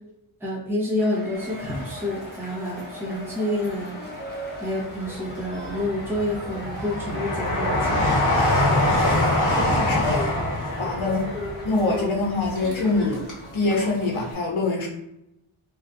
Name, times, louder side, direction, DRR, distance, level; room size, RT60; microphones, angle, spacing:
voice 1, 0.4-4.0 4.6-8.0, left 1 dB, 5° right, -7 dB, 1.2 m, -28 dB
sound 1, 1.0-14.3, left 1 dB, 20° left, 0.9 m, -38 dB
Train, 1.5-2.7 3.2-4.2 4.7-13.4 13.7-13.8, left 1 dB, 40° left, 1.2 m, -25 dB
voice 2, 9.4-10.3 10.8-11.3 11.6-13.3 13.5-14.9, left 3 dB, 65° left, -1 dB, 1.1 m, -24 dB
3.2 x 2.9 x 2.6 m, 0.83 s
wide cardioid pair, 95°, 50 cm